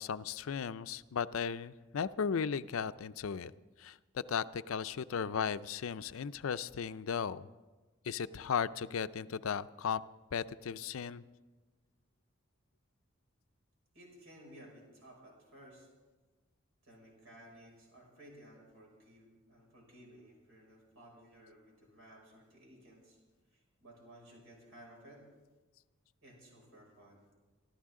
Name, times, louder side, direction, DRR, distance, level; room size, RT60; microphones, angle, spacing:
voice 1, 0.0-3.5 3.8-7.5 8.0-10.0 10.3-11.2, left 6 dB, 80° left, 14 dB, 0.5 m, -36 dB
voice 2, 13.9-15.9 16.8-23.2 23.5-25.2 26.2-27.3, right 1 dB, 90° right, -1 dB, 5.9 m, -57 dB
25.0 x 12.5 x 3.7 m, 1.2 s
head